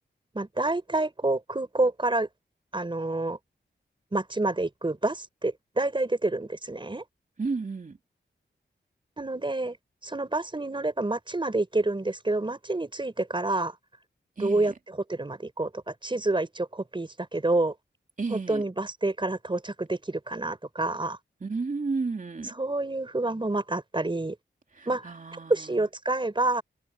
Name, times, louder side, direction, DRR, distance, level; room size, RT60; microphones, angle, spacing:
voice 1, 0.3-2.3 2.7-3.4 4.1-7.0 9.2-9.8 10.0-13.7 14.4-17.7 18.3-21.2 22.6-24.4 24.9-25.1 25.5-26.6, right 2 dB, 25° right, 5.1 m, -28 dB
voice 2, 7.4-8.0 14.4-14.7 18.2-18.6 21.4-22.5 24.7-25.9, right 4 dB, 45° right, 2.8 m, -32 dB
wide cardioid pair, 100°, 19 cm